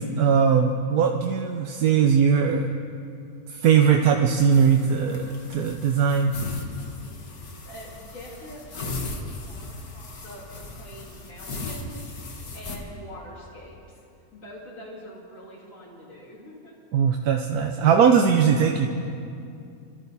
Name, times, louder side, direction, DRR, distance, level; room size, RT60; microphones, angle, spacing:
voice 1, 0.0-2.7 3.5-6.3 16.9-18.9, right 7 dB, 85° right, 3 dB, 1.3 m, -20 dB
sound 1, 4.4-12.8, left 3 dB, 80° left, 2.0 m, -37 dB
voice 2, 7.0-14.0 14.3-16.8, equal, 60° left, -6 dB, 3.4 m, -45 dB
26.0 x 13.0 x 4.1 m, 2.5 s
omnidirectional pair, 1.5 m